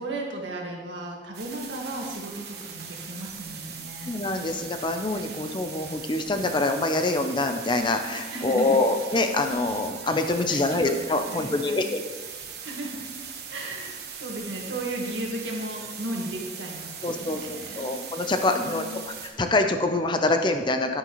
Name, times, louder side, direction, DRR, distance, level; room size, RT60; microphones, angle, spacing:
voice 1, 0.0-4.1 8.3-8.8 10.5-10.9 11.3-11.9 12.6-13.1 13.5-17.9 18.6-19.1, right 1 dB, 70° right, 0 dB, 1.6 m, -35 dB
sound 1, 1.3-19.3, right 6 dB, 55° right, 1.2 m, -40 dB
voice 2, 4.1-12.0 17.0-21.0, left 2 dB, 25° left, 6 dB, 0.5 m, -25 dB
9.7 x 9.6 x 3.0 m, 1.4 s
head